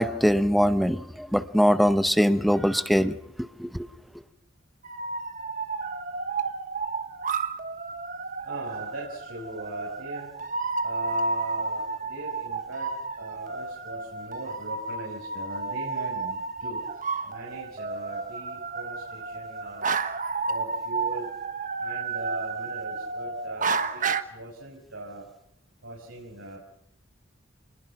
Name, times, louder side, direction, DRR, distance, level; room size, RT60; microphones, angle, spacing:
voice 1, 0.0-3.9, equal, ahead, 0.9 m, -22 dB
sound 1, 4.8-24.2, right 4 dB, 40° right, 1.4 m, -32 dB
voice 2, 8.4-10.3 10.8-16.8 17.2-19.9 20.5-21.3 21.8-24.0 24.3-25.3 25.8-26.6, right 2 dB, 85° right, 5.7 m, -39 dB
28.0 x 20.5 x 6.0 m
head